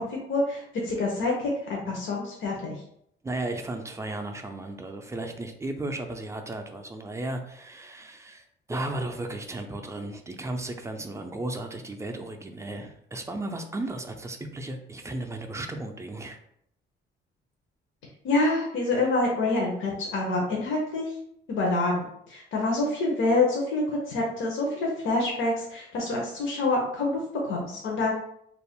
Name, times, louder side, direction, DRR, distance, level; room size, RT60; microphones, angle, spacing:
voice 1, 0.0-2.8 18.2-21.1 21.5-28.1, left 2 dB, 80° left, -2 dB, 0.7 m, -27 dB
voice 2, 3.2-16.4, right 2 dB, 15° right, 4 dB, 0.3 m, -35 dB
2.4 x 2.0 x 3.5 m, 0.72 s
cardioid pair, 90°, 20 cm